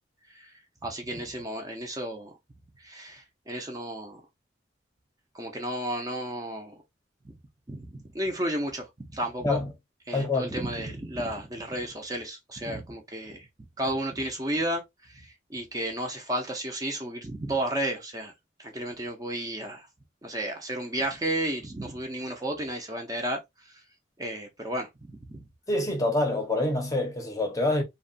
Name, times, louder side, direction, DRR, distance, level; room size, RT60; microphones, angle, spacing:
voice 1, 0.8-2.4 2.8-4.2 5.3-6.8 7.7-9.6 10.1-13.5 13.8-18.3 18.6-19.9 20.2-23.8 24.2-25.4, right 1 dB, 20° right, 0.5 m, -33 dB
voice 2, 10.1-10.5 25.7-27.8, left 2 dB, 20° left, 0.7 m, -26 dB
2.8 x 2.2 x 2.5 m
head